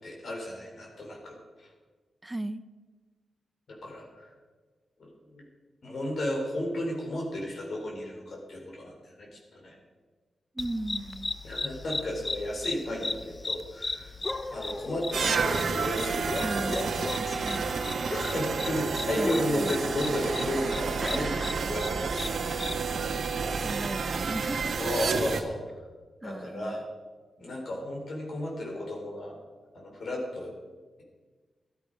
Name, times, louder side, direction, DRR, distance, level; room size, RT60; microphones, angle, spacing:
voice 1, 0.0-1.7 3.7-4.3 5.0-5.4 5.8-8.9 9.2-9.7 11.4-14.1 14.5-17.2 18.2-22.6 24.8-25.6 26.2-26.8 27.4-29.4 29.7-30.5, left 1 dB, 65° left, -1 dB, 3.9 m, -33 dB
voice 2, 2.2-2.6 10.5-11.3 16.4-17.7 19.2-20.0 21.0-21.7 22.4-22.8 23.1-24.8 26.2-26.8, right 1 dB, 15° right, 13 dB, 0.6 m, -37 dB
sound 1, 10.6-22.8, left 3 dB, 25° left, 0.6 m, -37 dB
Busy high harmonics drone, 15.1-25.4, right 5 dB, 70° right, 1.1 m, -30 dB
13.5 x 12.5 x 5.2 m, 1.4 s
wide cardioid pair, 100°, 0 cm